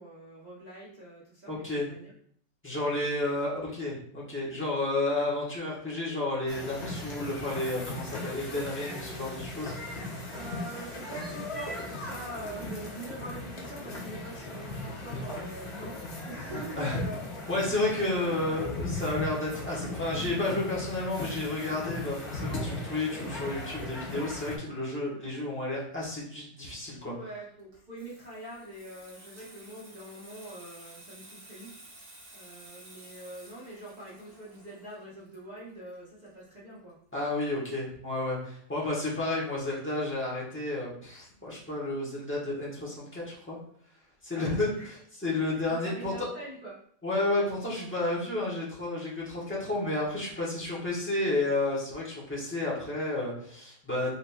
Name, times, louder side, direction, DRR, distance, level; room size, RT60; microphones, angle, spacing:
voice 1, 0.0-2.1 10.3-17.3 17.7-18.6 27.0-37.0 44.3-44.9 45.5-46.8, right 1 dB, 85° right, -6 dB, 0.4 m, -44 dB
voice 2, 1.5-1.9 2.6-9.7 16.8-17.0 17.5-27.1 37.1-43.6 44.2-44.7 45.2-46.3 47.0-54.1, left 2 dB, 10° left, -6 dB, 0.8 m, -31 dB
sound 1, 6.5-24.6, left 2 dB, 50° left, 0.8 m, -38 dB
Water tap faucet / Sink (filling or washing), 27.6-36.9 37.2-37.5, right 1 dB, 45° right, 1.5 m, -53 dB
4.1 x 3.7 x 2.2 m, 0.63 s
omnidirectional pair, 2.0 m